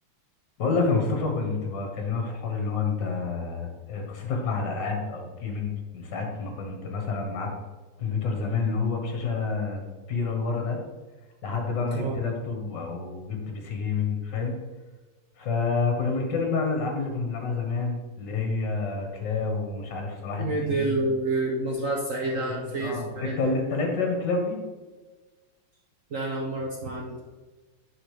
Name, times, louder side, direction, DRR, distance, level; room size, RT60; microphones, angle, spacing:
voice 1, 0.6-7.5 8.0-10.8 11.4-14.6 15.4-21.0 22.4-24.6, left 4 dB, 55° left, 2 dB, 1.8 m, -28 dB
voice 2, 11.9-12.2 20.4-23.4 26.1-27.2, right 2 dB, 70° right, 0 dB, 0.7 m, -28 dB
9.8 x 4.5 x 3.3 m, 1.3 s
omnidirectional pair, 2.4 m